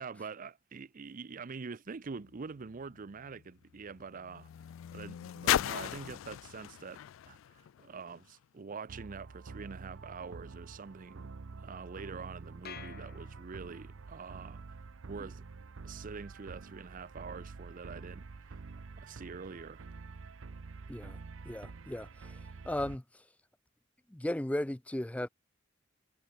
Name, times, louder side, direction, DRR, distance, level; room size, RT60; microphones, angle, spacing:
voice 1, 0.0-4.5 4.9-11.3 11.6-14.8 15.1-15.4 15.8-18.6 19.0-19.9, right 5 dB, 45° right, 0.6 m, -45 dB
sound 1, 1.9-8.4 9.3-9.4, left 11 dB, 80° left, 0.3 m, -37 dB
sound 2, 8.9-23.0, right 4 dB, 85° right, 0.6 m, -48 dB
sound 3, 12.7-14.0, left 7 dB, 55° left, 4.8 m, -50 dB
voice 2, 21.5-22.4 22.6-23.0 24.1-25.3, left 1 dB, 5° left, 0.5 m, -36 dB
head